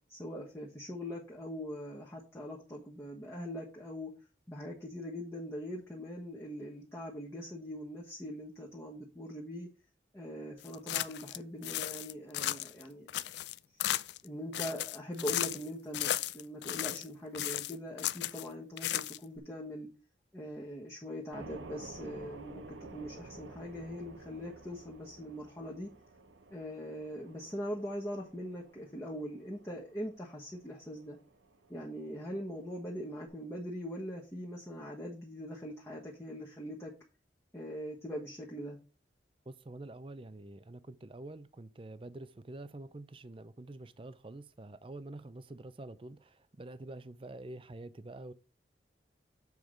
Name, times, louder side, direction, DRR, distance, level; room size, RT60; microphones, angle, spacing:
voice 1, 0.1-4.1 4.5-9.7 10.1-13.2 13.7-13.8 14.2-19.9 20.3-25.9 26.5-31.2 31.7-36.9 37.5-38.8, equal, 15° left, 1.2 m, -42 dB
sound 1, 10.7-11.4 11.6-12.8 13.1-14.3 14.5-15.7 15.9-17.1 17.3-18.5 18.8-19.4, left 13 dB, 65° left, 0.3 m, -35 dB
sound 2, 21.3-33.3, right 3 dB, 90° right, 1.0 m, -52 dB
voice 2, 39.5-48.3, right 2 dB, 30° right, 0.5 m, -47 dB
7.3 x 4.7 x 5.0 m
head